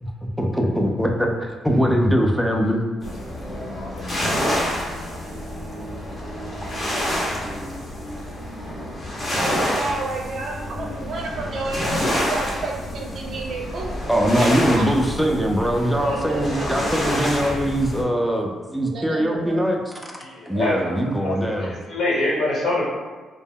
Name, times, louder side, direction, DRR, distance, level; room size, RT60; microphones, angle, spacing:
voice 1, 0.0-2.8 14.1-20.2 20.5-21.7, equal, ahead, 0 dB, 0.4 m, -22 dB
sound 1, 3.0-18.0, equal, 30° left, 0.7 m, -28 dB
voice 2, 9.4-14.0 14.4-14.5 14.8-14.9 15.9-16.8 18.8-19.8, right 3 dB, 60° right, 0 dB, 0.5 m, -31 dB
voice 3, 20.2-22.9, left 2 dB, 65° left, -5 dB, 1.1 m, -25 dB
2.1 x 2.0 x 3.5 m, 1.3 s
cardioid pair, 90°, 0 cm